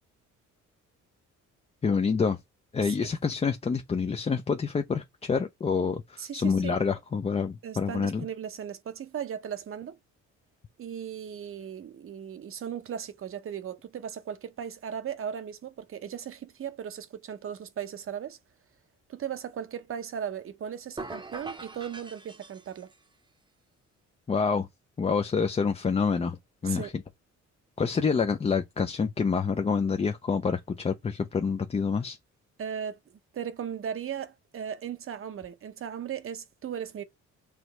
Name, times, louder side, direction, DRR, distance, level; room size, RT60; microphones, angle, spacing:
voice 1, 1.8-2.4 2.7-8.2 24.3-24.7 25.0-26.4 26.6-26.9 27.8-32.2, left 5 dB, 20° left, 0.4 m, -27 dB
voice 2, 2.8-3.1 6.2-6.8 7.6-10.0 10.8-18.4 19.1-22.9 26.6-26.9 32.6-33.0 33.3-37.0, right 8 dB, 45° right, 0.7 m, -37 dB
sound 1, 21.0-23.1, right 3 dB, 15° right, 0.7 m, -42 dB
4.8 x 3.1 x 3.0 m
cardioid pair, 90°, 30 cm